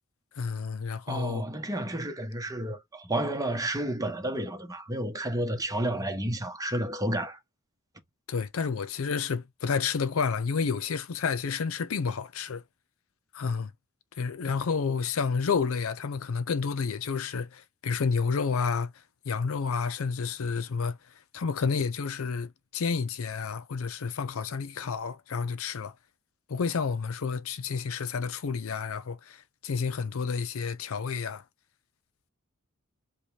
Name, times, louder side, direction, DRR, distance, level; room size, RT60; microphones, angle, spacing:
voice 1, 0.4-1.4 8.3-12.6 13.3-13.7 14.2-18.9 19.3-21.0 21.3-25.9 26.5-31.4, left 5 dB, 70° left, 0.5 m, -30 dB
voice 2, 1.1-7.4, right 1 dB, 15° right, 1.0 m, -31 dB
5.1 x 2.3 x 3.4 m
head